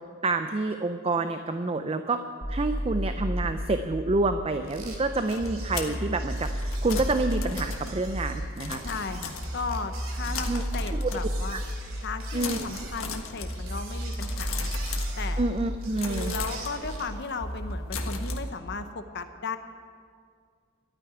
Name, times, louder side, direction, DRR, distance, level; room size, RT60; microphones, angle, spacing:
voice 1, 0.2-2.2 2.5-8.8 10.5-10.6 10.9-11.1 11.5-11.6 12.3-12.7 15.4-16.3, right 3 dB, 30° right, 8 dB, 0.5 m, -28 dB
sound 1, 2.4-18.4, equal, 10° right, 1.9 m, -33 dB
sound 2, 4.6-17.2, right 3 dB, 75° right, 2.7 m, -45 dB
sound 3, 4.8-9.9 10.2-11.6 11.9-12.1 12.4-15.6 16.0-18.4, left 6 dB, 85° left, 1.4 m, -39 dB
voice 2, 8.8-11.6 12.0-14.7 15.2-15.4 16.1-19.6, left 4 dB, 55° left, 8 dB, 0.8 m, -35 dB
12.5 x 9.6 x 9.2 m, 2.1 s
head